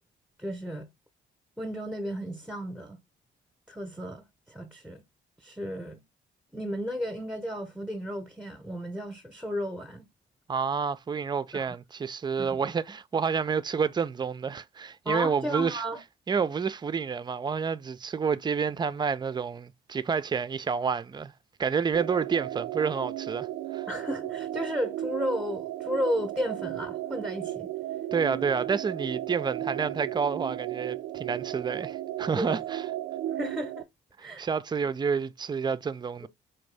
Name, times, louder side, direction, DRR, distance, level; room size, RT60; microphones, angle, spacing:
voice 1, 0.4-0.9 1.6-3.0 3.7-5.0 5.4-6.0 6.5-10.1 11.5-11.8 12.4-12.7 15.0-16.0 23.9-27.7 32.4-32.6 33.3-33.8 34.2-34.5 36.2-36.3, equal, 5° right, 0.8 m, -33 dB
voice 2, 10.5-15.8 16.3-21.3 21.6-23.5 23.7-23.9 28.1-32.8 34.2-36.3, right 6 dB, 20° right, 0.4 m, -29 dB
sound 1, 21.9-33.8, right 14 dB, 85° right, 0.4 m, -35 dB
4.4 x 2.6 x 3.3 m
cardioid pair, 90°, 20 cm